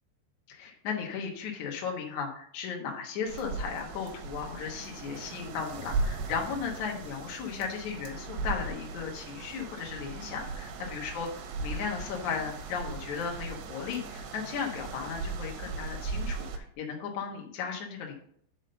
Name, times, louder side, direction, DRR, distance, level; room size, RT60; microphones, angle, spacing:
voice 1, 0.5-11.3 11.6-18.1, left 6 dB, 70° left, 0 dB, 1.9 m, -36 dB
sound 1, 3.3-16.6, right 3 dB, 75° right, 2.7 m, -38 dB
5.9 x 5.4 x 6.7 m, 0.62 s
omnidirectional pair, 5.0 m